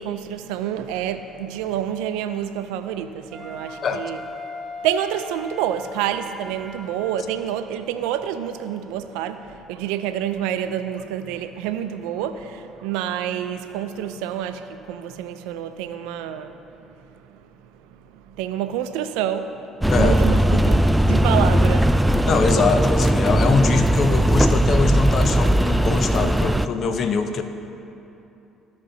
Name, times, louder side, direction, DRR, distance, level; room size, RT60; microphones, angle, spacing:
voice 1, 0.0-4.2 4.8-17.4 17.8-22.3, right 10 dB, 75° right, 0.4 m, -28 dB
Wind instrument woodwind instrument, 3.3-7.6, left 2 dB, 25° right, 1.6 m, -39 dB
sound 1, 19.8-26.7, right 1 dB, 10° right, 0.3 m, -18 dB
voice 2, 22.2-27.4, left 5 dB, 50° left, 0.6 m, -23 dB
15.0 x 5.1 x 2.7 m
hypercardioid pair, 55°, 0 cm